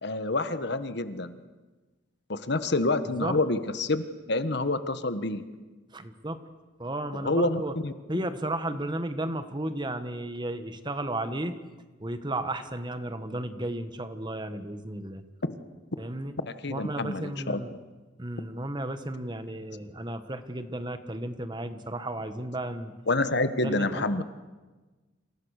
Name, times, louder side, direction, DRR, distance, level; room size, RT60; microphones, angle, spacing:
voice 1, 0.0-1.4 2.3-5.4 7.2-7.9 15.4-15.6 16.4-17.6 23.1-24.2, left 2 dB, 65° left, 11 dB, 1.4 m, -28 dB
voice 2, 5.9-6.4 6.8-7.7 8.1-11.5 12.0-15.2 16.0-16.3 16.7-17.7 18.2-22.9 23.6-24.2, right 1 dB, 25° right, 9 dB, 1.6 m, -33 dB
29.0 x 27.0 x 6.6 m, 1.3 s
head